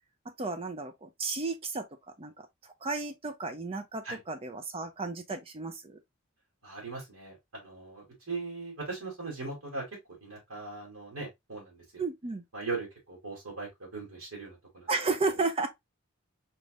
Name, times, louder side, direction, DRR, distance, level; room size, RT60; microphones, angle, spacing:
voice 1, 0.4-1.8 2.2-6.0 12.0-12.4 14.9-15.7, right 3 dB, 25° right, 0.5 m, -33 dB
voice 2, 6.6-9.8 10.2-12.0 12.5-14.9, right 3 dB, 85° right, 2.7 m, -39 dB
4.4 x 3.5 x 2.4 m
head